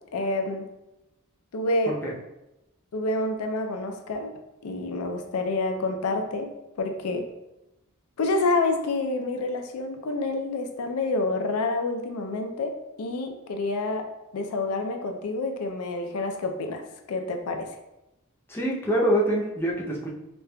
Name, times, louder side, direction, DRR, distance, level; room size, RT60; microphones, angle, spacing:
voice 1, 0.1-0.7 1.5-1.9 2.9-4.3 4.6-6.5 6.8-7.2 8.2-14.1 14.3-17.8, left 2 dB, 90° left, 4 dB, 0.5 m, -28 dB
voice 2, 18.5-20.1, right 1 dB, 10° left, -4 dB, 0.5 m, -25 dB
5.0 x 2.3 x 2.2 m, 0.93 s
head